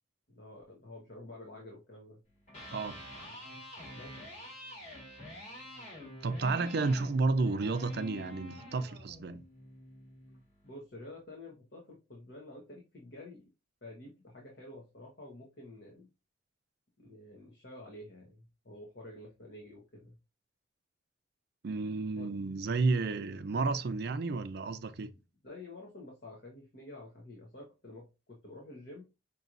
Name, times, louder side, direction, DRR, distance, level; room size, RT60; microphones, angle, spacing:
voice 1, 0.3-2.2 3.9-4.1 10.6-13.5 13.8-16.1 17.0-20.2 22.1-22.3 25.4-29.0, left 2 dB, 60° left, 1.2 m, -49 dB
Electric guitar, 2.4-10.5, left 1 dB, 45° left, 2.5 m, -47 dB
voice 2, 6.2-9.4 21.6-25.1, right 3 dB, 60° right, 0.5 m, -31 dB
5.3 x 3.0 x 2.6 m
head